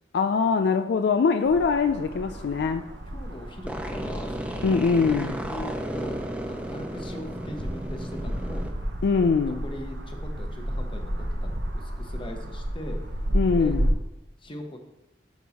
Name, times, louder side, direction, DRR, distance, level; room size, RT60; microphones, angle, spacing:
voice 1, 0.1-2.8 4.6-5.3 9.0-9.6 13.3-13.9, left 5 dB, 65° left, 8 dB, 0.3 m, -22 dB
sound 1, 1.4-13.9, equal, 75° right, 0.9 m, -32 dB
voice 2, 3.1-8.6 9.5-13.2 13.6-13.8 14.4-14.8, left 1 dB, 30° left, 4 dB, 0.9 m, -40 dB
sound 2, 3.7-8.7, right 1 dB, 5° right, 0.5 m, -34 dB
10.5 x 5.5 x 2.9 m, 0.97 s
head